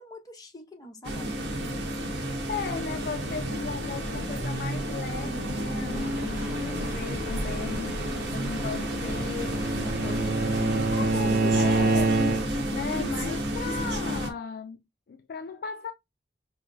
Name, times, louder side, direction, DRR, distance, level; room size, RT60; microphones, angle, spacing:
voice 1, 0.0-1.9, left 1 dB, 20° left, 0.8 m, -47 dB
sound 1, 1.0-14.3, equal, 90° right, 1.0 m, -31 dB
voice 2, 1.1-1.8 2.5-12.4 12.7-14.8 15.1-15.9, left 6 dB, 55° left, 0.3 m, -37 dB
sound 2, 5.9-10.9, right 1 dB, 10° right, 0.6 m, -44 dB
Bowed string instrument, 8.8-12.8, right 3 dB, 55° right, 0.3 m, -26 dB
4.8 x 2.0 x 2.6 m
head